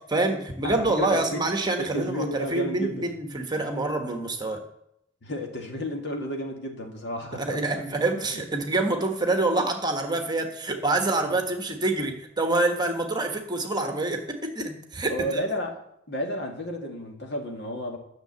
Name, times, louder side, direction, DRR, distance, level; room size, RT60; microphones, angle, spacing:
voice 1, 0.1-4.6 7.3-15.4, right 2 dB, 20° right, 4 dB, 1.4 m, -26 dB
voice 2, 0.6-1.4 1.8-3.1 5.2-8.0 15.1-15.8 16.1-18.0, equal, 60° left, 2 dB, 2.1 m, -32 dB
11.5 x 6.7 x 8.0 m, 0.77 s
head